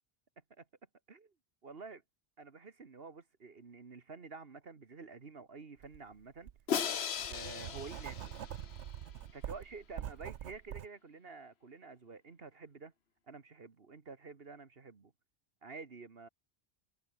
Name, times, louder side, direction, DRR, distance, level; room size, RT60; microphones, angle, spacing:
voice 1, 1.6-2.0 2.4-6.5 7.3-8.3 9.3-12.9 13.3-15.1 15.6-16.3, right 4 dB, 60° right, 1.8 m, -49 dB
Writing, 5.8-6.0 6.4-10.9, right 10 dB, 85° right, 1.0 m, -44 dB
Crash cymbal, 6.7-8.9, left 7 dB, 75° left, 1.3 m, -37 dB
omnidirectional pair, 1.1 m